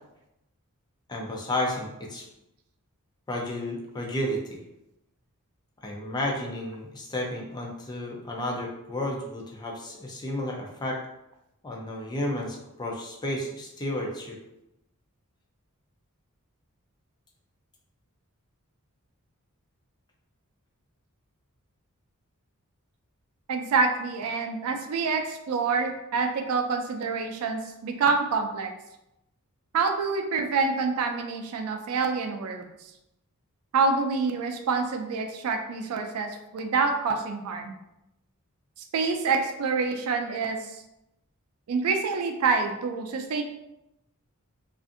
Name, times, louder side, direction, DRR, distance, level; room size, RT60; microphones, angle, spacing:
voice 1, 1.1-2.2 3.3-4.6 5.8-11.0 11.6-14.4, left 1 dB, 20° left, -1 dB, 0.4 m, -32 dB
voice 2, 23.5-28.7 29.7-32.7 33.7-37.7 38.9-40.6 41.7-43.4, right 4 dB, 70° right, 5 dB, 0.4 m, -27 dB
2.5 x 2.5 x 2.5 m, 0.88 s
head